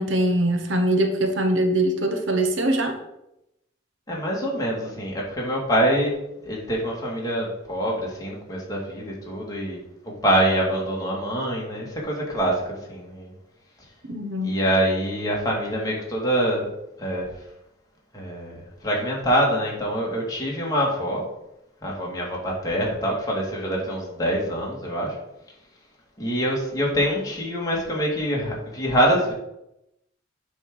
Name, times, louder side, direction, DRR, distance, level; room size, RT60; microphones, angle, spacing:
voice 1, 0.0-3.0 14.1-14.6, right 1 dB, 75° right, 5 dB, 1.2 m, -22 dB
voice 2, 4.1-6.1 6.4-9.8 10.0-12.6 12.9-13.3 14.4-16.7 17.0-17.3 18.1-21.2 21.8-25.2 26.2-29.3, equal, 20° left, -3 dB, 2.1 m, -25 dB
8.8 x 3.7 x 6.2 m, 0.86 s
head